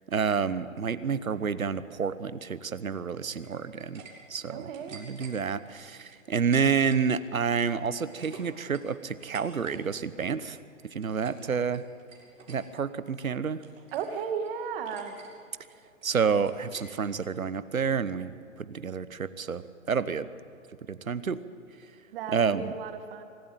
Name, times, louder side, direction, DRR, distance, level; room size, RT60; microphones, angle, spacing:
voice 1, 0.1-4.0 4.3-10.6 10.9-11.8 12.5-13.6 16.0-19.6 19.9-20.3 20.9-21.4 22.3-22.7, right 6 dB, 90° right, 15 dB, 1.1 m, -29 dB
sound 1, 3.3-4.1 4.4-5.3 6.0-7.1 7.4-9.8 10.0-10.4 10.8-11.4 11.7-12.6 13.0-14.1 14.4-14.5 14.9-15.3 15.6-17.1, right 4 dB, 70° right, 7.0 m, -50 dB
voice 2, 4.5-5.0 13.9-15.2 22.1-23.2, right 7 dB, 40° right, 7 dB, 2.3 m, -34 dB
24.5 x 12.5 x 9.1 m, 2.5 s
hypercardioid pair, 130°, 40 cm